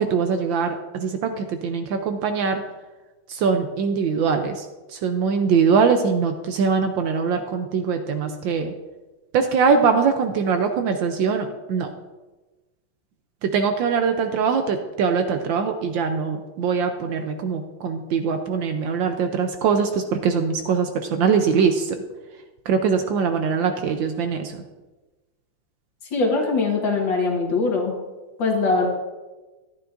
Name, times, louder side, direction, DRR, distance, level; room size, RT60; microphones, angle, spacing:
voice 1, 0.0-2.6 3.3-4.6 4.9-8.7 9.3-11.9 13.4-22.0 22.7-24.6, right 5 dB, 75° right, 6 dB, 1.2 m, -22 dB
voice 2, 26.1-28.0 28.4-28.9, left 3 dB, 60° left, 0 dB, 2.1 m, -22 dB
11.5 x 9.7 x 2.5 m, 1.2 s
omnidirectional pair, 2.4 m